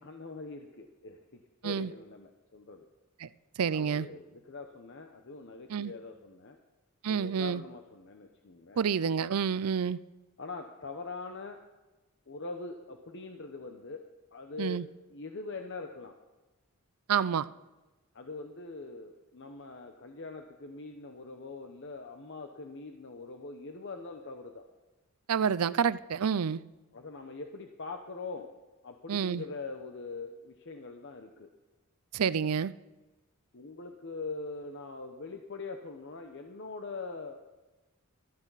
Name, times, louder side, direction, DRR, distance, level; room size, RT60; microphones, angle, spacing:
voice 1, 0.0-2.9 3.7-6.6 7.1-8.9 10.4-11.6 12.3-14.1 14.3-14.8 15.1-16.1 18.1-24.7 26.9-28.5 28.8-31.5 33.5-37.4, left 3 dB, 55° left, 0.9 m, -43 dB
voice 2, 3.6-4.1 5.7-5.9 7.0-7.6 8.8-10.0 14.6-14.9 17.1-17.5 25.3-26.6 29.1-29.4 32.1-32.7, right 7 dB, 85° right, 0.5 m, -28 dB
16.0 x 13.5 x 4.1 m
head